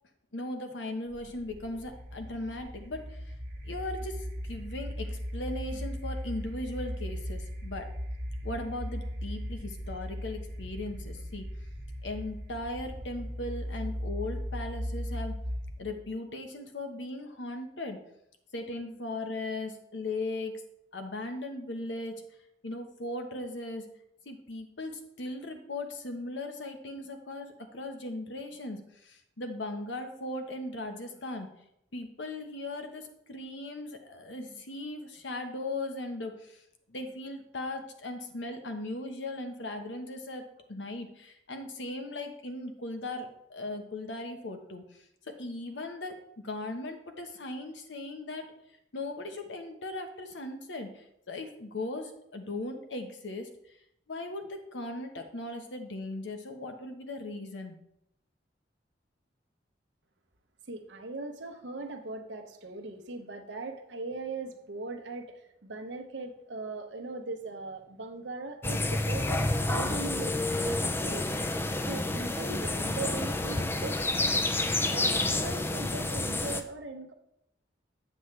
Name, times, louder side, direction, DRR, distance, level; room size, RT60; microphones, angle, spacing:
voice 1, 0.3-3.3 3.6-7.9 8.4-11.5 12.0-15.3 15.8-18.0 18.5-20.6 20.9-22.2 22.6-23.9 24.2-31.5 31.9-36.6 36.9-45.0 45.4-46.1 46.4-48.5 48.9-53.5 54.1-57.8, left 2 dB, 85° left, 5 dB, 1.0 m, -38 dB
sound 1, 1.1-16.0, equal, 50° right, 1.1 m, -38 dB
voice 2, 60.7-71.3 71.9-74.4 74.8-77.1, right 2 dB, 80° right, 5 dB, 0.9 m, -39 dB
sound 2, 68.6-76.6, left 2 dB, 15° left, 0.4 m, -29 dB
7.8 x 7.1 x 3.2 m, 0.78 s
head